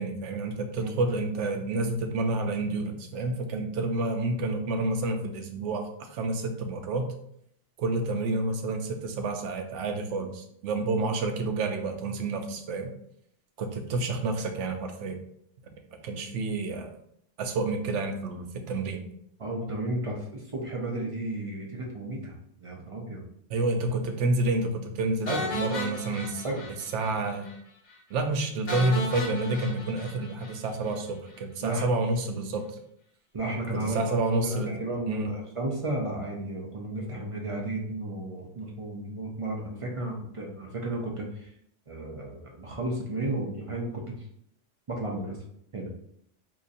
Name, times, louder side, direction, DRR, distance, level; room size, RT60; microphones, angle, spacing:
voice 1, 0.0-7.2 7.8-12.9 13.6-15.2 16.0-16.9 17.4-19.0 23.5-26.4 26.9-27.5 28.1-32.6 33.7-34.8 35.1-35.3, right 2 dB, 75° right, 5 dB, 0.9 m, -29 dB
voice 2, 19.4-23.2 25.3-25.6 26.4-26.7 31.6-31.9 33.3-34.1 34.4-41.5 41.9-44.0 44.9-45.4 45.7-45.9, right 2 dB, 50° right, -1 dB, 0.4 m, -33 dB
sound 1, 25.3-27.2 27.4-27.6 27.9-28.0 28.7-31.0, left 1 dB, 45° left, 0.7 m, -35 dB
3.9 x 2.9 x 2.5 m, 0.70 s
omnidirectional pair, 1.3 m